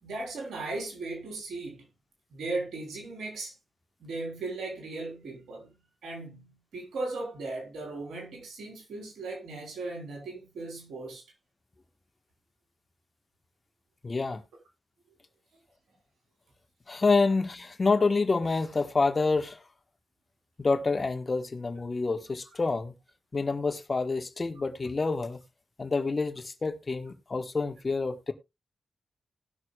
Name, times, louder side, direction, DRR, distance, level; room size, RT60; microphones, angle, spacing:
voice 1, 0.0-1.9 2.3-3.5 4.0-11.2, right 3 dB, 85° right, 3.6 m, -37 dB
voice 2, 14.0-14.4 16.9-19.6 20.6-22.9 23.3-25.4 25.8-28.3, left 3 dB, 45° left, 1.5 m, -27 dB
19.0 x 6.3 x 2.4 m
supercardioid pair, 40°, 0 cm